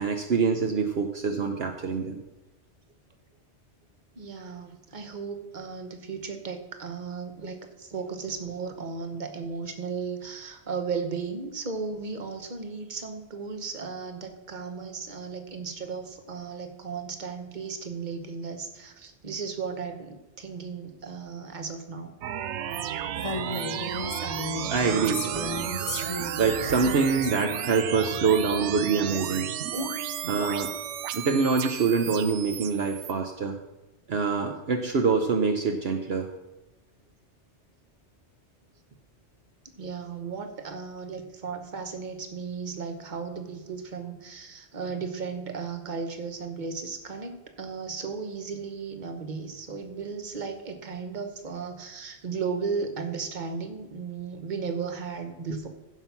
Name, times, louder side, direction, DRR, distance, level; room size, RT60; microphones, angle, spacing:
voice 1, 0.0-2.2 24.7-25.7 26.4-29.5 30.3-30.7 31.1-33.6 34.1-36.3, right 5 dB, 65° right, 4 dB, 1.1 m, -25 dB
voice 2, 4.1-22.1 23.8-24.0 29.7-29.9 39.6-55.7, right 5 dB, 45° right, 6 dB, 1.2 m, -35 dB
sound 1, 22.2-33.1, right 10 dB, 80° right, 0.9 m, -33 dB
Female speech woman speaking, 23.2-27.3, left 3 dB, 35° left, 0.8 m, -35 dB
15.0 x 5.8 x 5.9 m, 1.0 s
omnidirectional pair, 1.2 m